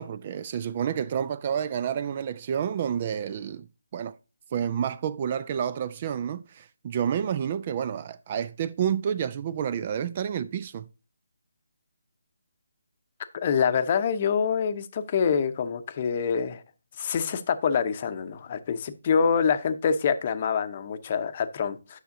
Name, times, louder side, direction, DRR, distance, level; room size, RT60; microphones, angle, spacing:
voice 1, 0.0-3.7 3.9-4.1 4.5-10.9, right 8 dB, 30° right, 0.3 m, -29 dB
voice 2, 13.3-16.6 17.0-22.0, left 6 dB, 30° left, 0.7 m, -26 dB
9.3 x 6.5 x 2.7 m
figure-of-eight pair, 150°, 0 cm